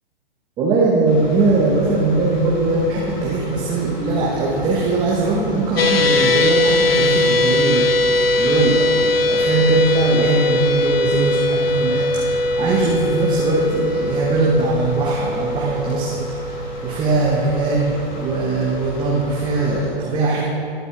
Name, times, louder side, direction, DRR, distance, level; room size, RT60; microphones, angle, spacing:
voice 1, 0.6-20.4, right 3 dB, 15° right, -4 dB, 1.0 m, -20 dB
sound 1, 1.1-19.9, left 1 dB, 50° left, 2.5 m, -34 dB
sound 2, 5.8-18.1, left 2 dB, 75° left, 0.6 m, -20 dB
19.5 x 8.0 x 2.4 m, 2.7 s
figure-of-eight pair, 115°, 30 cm